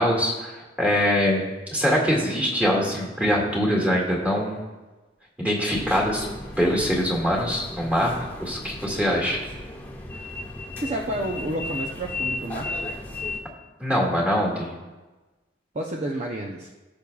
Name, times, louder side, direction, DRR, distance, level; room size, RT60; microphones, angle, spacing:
voice 1, 0.0-1.4 1.7-4.7 5.4-6.3 6.6-9.4 13.8-14.7, equal, 10° right, -3 dB, 2.0 m, -23 dB
sound 1, 5.7-13.4, left 2 dB, 10° left, 1.3 m, -35 dB
voice 2, 10.8-12.7 15.7-16.7, right 1 dB, 35° right, 0 dB, 0.6 m, -30 dB
16.5 x 6.9 x 2.3 m, 1.2 s
head